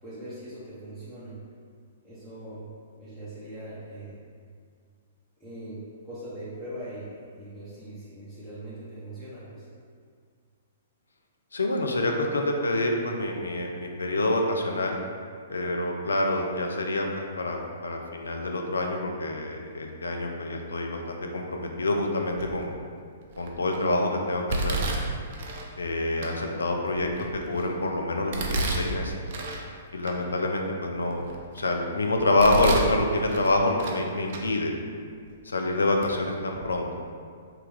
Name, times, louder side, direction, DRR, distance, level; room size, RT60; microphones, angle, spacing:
voice 1, 0.0-1.4 2.0-2.7 3.0-4.2 5.4-9.7, right 1 dB, 5° left, -13 dB, 1.0 m, -41 dB
voice 2, 11.5-15.0 15.5-22.8 23.4-24.9 25.8-27.1 27.5-29.2 29.9-31.3 31.5-34.7 35.5-36.9, left 2 dB, 80° left, 2 dB, 0.5 m, -27 dB
Domestic sounds home sounds, 22.4-22.8 23.3-23.8 24.5-25.7 26.2-26.3 26.9-27.7 28.3-29.6 30.0-30.1 30.7-31.7 32.2-32.9 33.3-34.0 34.3-34.4 35.3-35.4 36.0-36.1 36.5-36.7, right 2 dB, 50° right, 0.5 m, -31 dB
3.2 x 2.8 x 3.6 m, 2.1 s
figure-of-eight pair, 120°, 0 cm